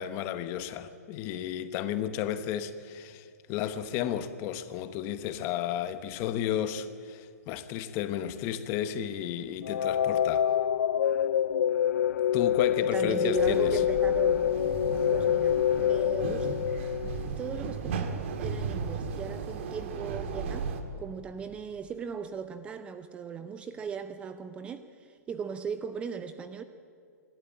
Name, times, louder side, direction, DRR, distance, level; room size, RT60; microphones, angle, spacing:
voice 1, 0.0-10.5 12.3-13.8, left 10 dB, 30° left, 1.0 m, -33 dB
sound 1, 9.6-17.6, left 10 dB, 80° left, 0.5 m, -26 dB
voice 2, 12.9-14.5 15.1-16.5 17.3-20.7 21.0-26.6, right 6 dB, 15° right, 0.5 m, -38 dB
sound 2, 13.3-20.8, right 5 dB, 45° right, 2.0 m, -35 dB
26.5 x 12.5 x 8.7 m
hypercardioid pair, 155°, 9 cm